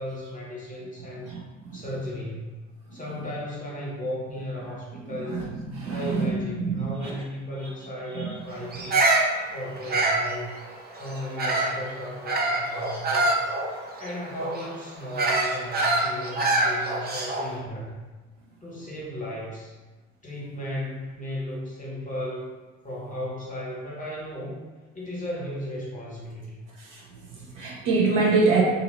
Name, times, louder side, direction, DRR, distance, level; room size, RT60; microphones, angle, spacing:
voice 1, 0.0-1.3 1.7-2.6 2.9-5.4 5.9-9.0 9.5-10.6 11.0-13.5 14.0-18.0 18.6-19.7 20.2-22.5 22.8-24.6 24.9-26.6, left 1 dB, 20° left, -5 dB, 1.3 m, -35 dB
voice 2, 1.2-1.8 2.9-3.0 5.2-7.1 8.1-8.3 8.7-8.9 16.3-16.4 26.8-27.0 27.3-28.6, right 4 dB, 55° right, -3 dB, 0.9 m, -26 dB
Bird vocalization bird call bird song, 8.7-11.8 12.3-17.6, right 2 dB, 25° right, 0.6 m, -25 dB
2.8 x 2.8 x 3.9 m, 1.2 s
figure-of-eight pair, 55°, 37 cm